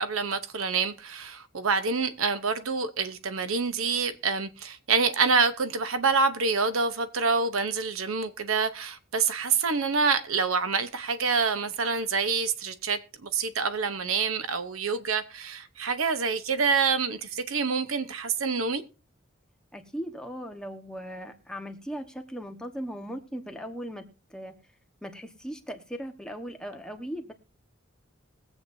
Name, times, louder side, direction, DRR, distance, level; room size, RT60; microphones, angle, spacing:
voice 1, 0.0-18.8, right 5 dB, 75° right, 0.9 m, -27 dB
voice 2, 19.7-24.0 24.3-24.5 25.0-27.3, equal, 5° left, 1.2 m, -38 dB
22.0 x 8.0 x 2.7 m
head